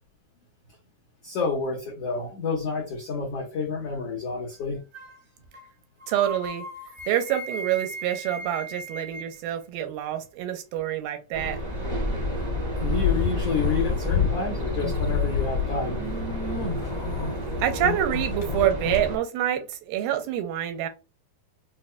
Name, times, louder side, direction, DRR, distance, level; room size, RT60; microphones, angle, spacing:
voice 1, 1.2-4.8 12.8-16.0 16.8-16.9, left 4 dB, 80° left, 1.4 m, -29 dB
sound 1, 4.9-5.2 5.5-5.7 6.0-9.4, right 1 dB, 65° right, 0.9 m, -38 dB
voice 2, 6.1-6.7 7.1-11.6 17.6-20.9, right 11 dB, 85° right, 2.4 m, -27 dB
sound 2, 11.3-19.2, equal, 35° right, 0.8 m, -30 dB
sound 3, 12.8-14.3 14.7-19.0, left 7 dB, 50° left, 1.7 m, -29 dB
6.0 x 2.3 x 2.2 m
omnidirectional pair, 4.4 m